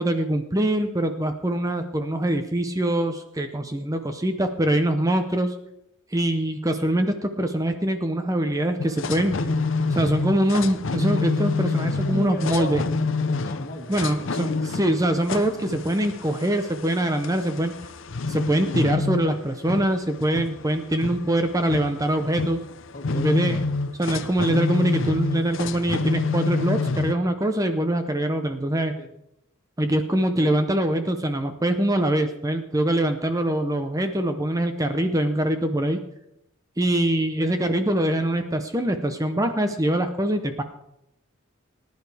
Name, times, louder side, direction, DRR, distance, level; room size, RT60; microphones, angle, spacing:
voice 1, 0.0-5.5 6.1-9.5 9.9-12.8 13.9-17.7 18.3-22.6 23.1-23.6 24.0-29.0 29.8-36.0 36.8-40.6, right 1 dB, 15° right, 7 dB, 0.7 m, -23 dB
sound 1, 8.8-27.1, left 3 dB, 65° left, 0.7 m, -28 dB
voice 2, 12.0-14.1 22.9-23.3 29.0-29.1, left 2 dB, 45° left, 3 dB, 1.9 m, -35 dB
19.5 x 10.5 x 3.4 m, 0.81 s
head